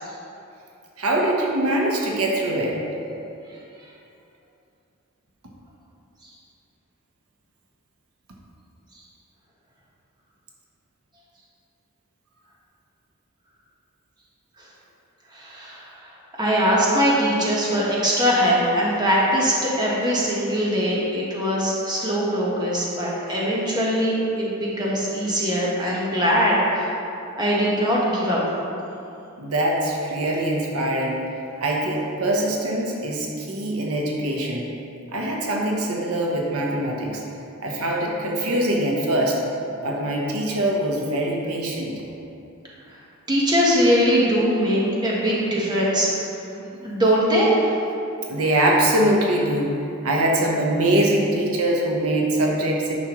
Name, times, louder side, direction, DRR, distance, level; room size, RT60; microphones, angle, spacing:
voice 1, 1.0-2.8 29.4-34.7 35.1-37.2 37.6-39.4 39.8-42.0 45.3-45.4 46.5-46.7 48.3-49.8 50.0-52.9, right 1 dB, 85° right, -1 dB, 1.0 m, -23 dB
voice 2, 15.3-15.9 16.4-26.9 27.4-28.4 43.3-46.2 46.8-47.5, equal, 20° right, -5 dB, 1.3 m, -21 dB
9.6 x 6.1 x 3.1 m, 2.7 s
head